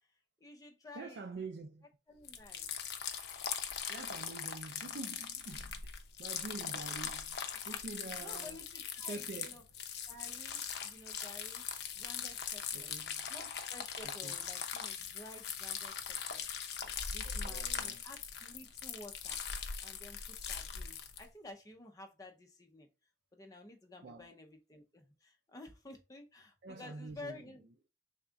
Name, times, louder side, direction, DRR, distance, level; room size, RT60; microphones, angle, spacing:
voice 1, 0.4-1.2 2.1-2.7 7.5-7.6 8.2-9.6 10.1-11.6 12.0-12.9 13.3-16.4 17.1-19.4 19.8-22.9 23.3-27.6, left 2 dB, 20° left, 0.6 m, -52 dB
voice 2, 0.9-1.9 3.9-5.9 6.2-7.4 7.6-8.6 9.1-9.7 12.7-13.3 14.0-14.4 16.8-16.9 17.2-18.0 24.0-24.3 26.6-27.5, right 3 dB, 65° right, 0.4 m, -47 dB
sound 1, 2.2-21.2, left 7 dB, 65° left, 0.5 m, -41 dB
3.5 x 2.3 x 3.9 m
head